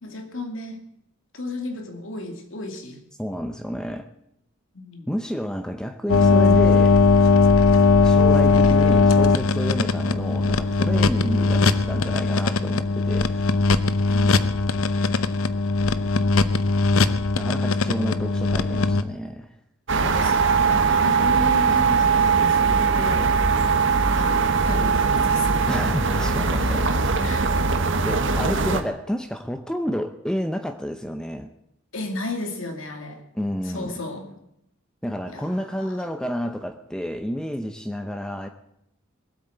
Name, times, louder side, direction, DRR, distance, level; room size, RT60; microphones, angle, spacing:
voice 1, 0.0-0.9 1.3-3.0 4.7-5.1 14.1-14.3 20.0-25.8 27.2-27.7 31.9-33.2 33.6-34.4 35.3-36.0, left 2 dB, 65° left, 5 dB, 2.4 m, -34 dB
voice 2, 3.2-4.1 5.1-7.0 8.0-13.6 17.4-19.6 25.7-26.9 27.2-27.7 28.0-31.5 33.3-34.0 35.0-38.5, equal, 5° left, 7 dB, 0.7 m, -30 dB
sound 1, 6.1-19.0, left 3 dB, 80° left, 0.8 m, -19 dB
sound 2, 19.9-28.8, right 5 dB, 60° right, 1.3 m, -20 dB
19.0 x 8.5 x 7.8 m, 0.79 s
head